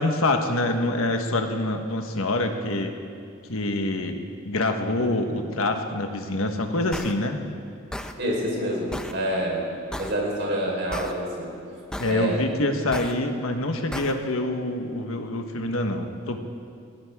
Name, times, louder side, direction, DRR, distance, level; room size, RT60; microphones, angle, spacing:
voice 1, 0.0-2.9 3.5-7.4 12.0-16.4, left 2 dB, 75° left, 5 dB, 1.3 m, -26 dB
sound 1, 6.9-7.1 7.9-8.1 8.9-9.1 9.9-10.1 10.9-11.1 11.9-12.1 12.9-13.1 13.9-14.1, equal, 5° left, 0.6 m, -33 dB
voice 2, 8.2-9.6 10.0-11.5 12.0-12.5, equal, 55° right, -2 dB, 4.4 m, -27 dB
20.0 x 17.5 x 3.6 m, 2.5 s
head